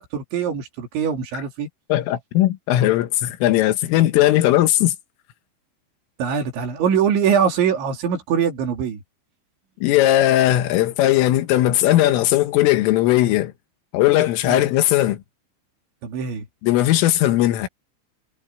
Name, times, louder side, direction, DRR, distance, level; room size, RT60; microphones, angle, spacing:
voice 1, 0.0-1.7 6.2-9.0 14.5-14.6 16.0-16.5, right 7 dB, 70° right, 5.6 m, -22 dB
voice 2, 1.9-5.0 9.8-13.5 13.9-15.2 16.6-17.7, left 14 dB, 85° left, 3.9 m, -18 dB
omnidirectional pair, 5.7 m